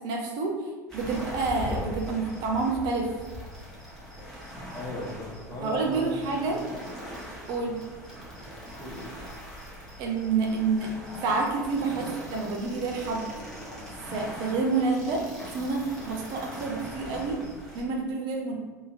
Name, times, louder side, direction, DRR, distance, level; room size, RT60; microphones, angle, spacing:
voice 1, 0.0-3.1 5.6-6.6 7.5-7.8 10.0-10.9 11.2-13.3 14.1-17.4 17.7-18.6, right 4 dB, 50° right, 1 dB, 0.5 m, -28 dB
sound 1, 0.9-17.8, equal, 5° left, 0.9 m, -41 dB
voice 2, 4.5-6.6 7.6-7.7 8.4-8.5 8.8-9.2, equal, 25° left, -5 dB, 1.1 m, -38 dB
2.8 x 2.7 x 2.4 m, 1.2 s
hypercardioid pair, 80°, 10 cm